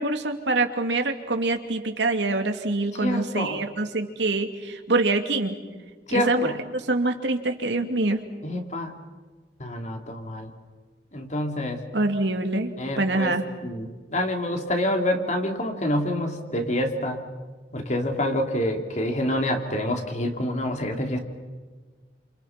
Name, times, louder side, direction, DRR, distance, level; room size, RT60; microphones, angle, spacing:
voice 1, 0.0-5.5 6.1-8.2 11.9-13.4, right 2 dB, 85° right, 5 dB, 2.5 m, -25 dB
voice 2, 3.0-3.6 6.1-6.6 8.4-9.0 9.6-10.5 11.1-11.8 12.8-13.3 13.6-17.2 17.7-21.2, left 1 dB, 40° left, 4 dB, 3.0 m, -27 dB
29.5 x 28.0 x 6.0 m, 1.3 s
head